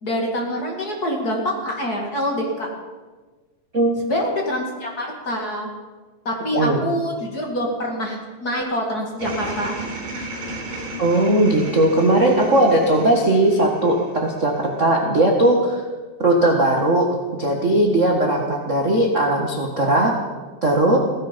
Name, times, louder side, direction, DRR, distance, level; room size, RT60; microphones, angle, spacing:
voice 1, 0.0-2.7 4.0-5.7 6.2-9.8, equal, 30° left, 0 dB, 2.2 m, -25 dB
sound 1, 9.2-14.6, right 1 dB, 75° right, 6.0 m, -34 dB
voice 2, 11.0-15.8 16.2-17.1 17.3-20.1 20.6-21.0, right 1 dB, 40° right, 0 dB, 1.0 m, -18 dB
17.0 x 15.5 x 5.2 m, 1.3 s
omnidirectional pair, 4.0 m